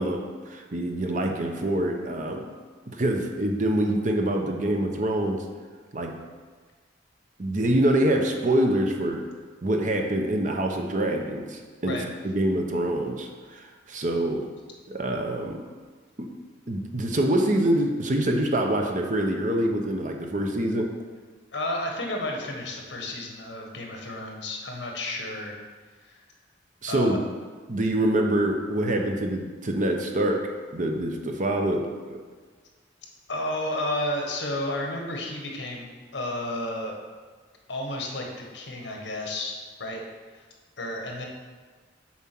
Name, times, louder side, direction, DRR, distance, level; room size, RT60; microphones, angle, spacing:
voice 1, 0.0-2.5 2.9-5.4 5.9-6.1 7.4-9.2 9.6-12.0 12.2-14.5 14.9-15.6 16.2-16.3 16.7-20.9 26.8-27.2 27.7-32.2, right 1 dB, 40° right, 3 dB, 0.8 m, -25 dB
voice 2, 21.5-25.6 26.0-26.2 26.9-27.2 33.3-36.9 37.7-39.5 39.8-40.0 40.8-41.3, left 1 dB, 65° left, 1 dB, 1.3 m, -32 dB
7.4 x 4.4 x 6.0 m, 1.5 s
head